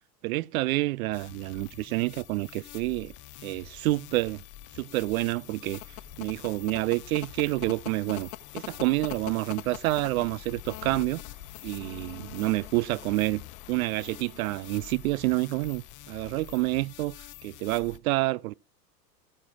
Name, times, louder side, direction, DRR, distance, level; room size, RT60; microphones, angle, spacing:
voice 1, 0.2-3.1 3.4-4.4 4.7-5.8 6.2-8.3 8.5-11.2 11.6-13.4 13.7-17.2 17.4-18.5, right 19 dB, 60° right, 0.5 m, -28 dB
sound 1, 1.1-18.0, left 13 dB, 25° left, 0.5 m, -47 dB
sound 2, 5.4-16.1, left 16 dB, 60° left, 1.0 m, -45 dB
14.0 x 6.5 x 5.9 m
hypercardioid pair, 110°, 50 cm